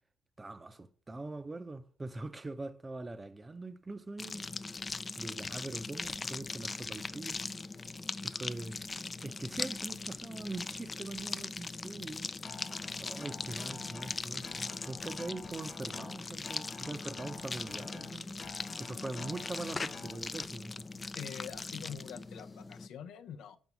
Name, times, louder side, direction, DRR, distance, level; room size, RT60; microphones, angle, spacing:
voice 1, 0.4-4.4 5.2-7.4 8.2-8.8 9.2-12.3 13.0-18.3 18.8-20.9, right 2 dB, 20° right, 0.6 m, -42 dB
sound 1, 4.2-22.9, left 3 dB, 30° left, 0.3 m, -40 dB
Acoustic guitar, 12.4-20.4, left 4 dB, 45° left, 1.4 m, -48 dB
voice 2, 21.1-23.6, left 8 dB, 80° left, 0.6 m, -45 dB
5.8 x 5.4 x 5.9 m
cardioid pair, 90°, 0 cm